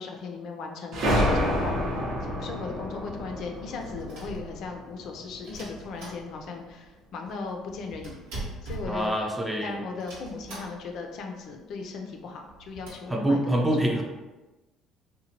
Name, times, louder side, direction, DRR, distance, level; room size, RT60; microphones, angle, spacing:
voice 1, 0.0-8.2 8.6-9.1 9.6-13.9, left 4 dB, 65° left, 3 dB, 0.4 m, -37 dB
sound 1, 0.9-5.4, equal, 65° right, 0.7 m, -28 dB
sound 2, 3.6-4.9 5.4-6.7 7.0-7.1 7.3-9.5 10.0-11.1 11.4-11.5 11.7-11.8 12.3-12.9, right 2 dB, 85° right, 0.9 m, -42 dB
voice 2, 8.8-9.8 13.1-14.0, right 1 dB, 10° right, 0 dB, 0.5 m, -25 dB
2.8 x 2.1 x 2.9 m, 1.1 s
supercardioid pair, 80°, 0 cm